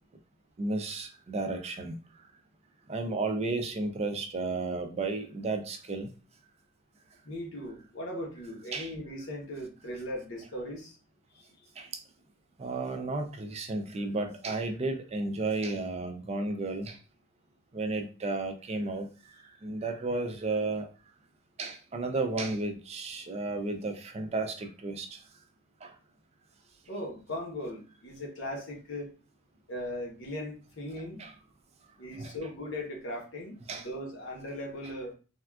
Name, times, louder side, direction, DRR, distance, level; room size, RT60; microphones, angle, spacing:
voice 1, 0.6-2.0 2.9-6.1 8.7-8.9 11.8-11.9 12.6-17.0 17.7-19.1 19.6-20.9 21.6-25.2 25.8-25.9 31.2-31.3 32.2-32.3 33.7-33.9, right 3 dB, 30° right, 0.4 m, -33 dB
voice 2, 7.2-11.0 11.3-11.7 26.9-29.1 29.7-31.2 32.0-35.1, left 1 dB, 65° left, 0.9 m, -38 dB
3.5 x 2.3 x 2.2 m
head